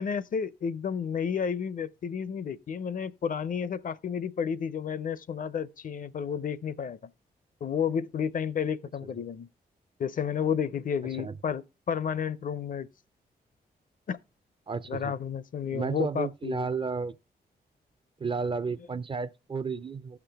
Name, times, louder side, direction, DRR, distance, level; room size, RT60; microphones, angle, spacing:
voice 1, 0.0-7.0 7.6-9.5 10.0-12.9 14.1-14.2 14.9-16.7, left 7 dB, 55° left, 0.5 m, -31 dB
voice 2, 14.7-15.2 15.7-17.2 18.2-20.2, right 5 dB, 30° right, 0.4 m, -32 dB
14.5 x 5.9 x 3.4 m
cardioid pair, 75°, 17 cm